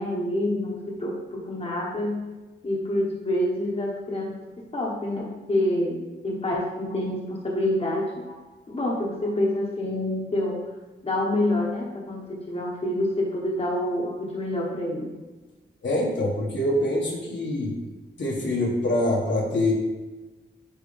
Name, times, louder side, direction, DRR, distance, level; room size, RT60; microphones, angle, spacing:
voice 1, 0.0-2.2 2.6-8.4 8.7-10.6 11.0-15.1, left 1 dB, 35° left, -2 dB, 1.2 m, -27 dB
voice 2, 15.8-17.8 18.2-19.7, left 1 dB, 75° left, -3 dB, 1.6 m, -25 dB
9.4 x 3.1 x 3.4 m, 1.2 s
wide cardioid pair, 95°, 19 cm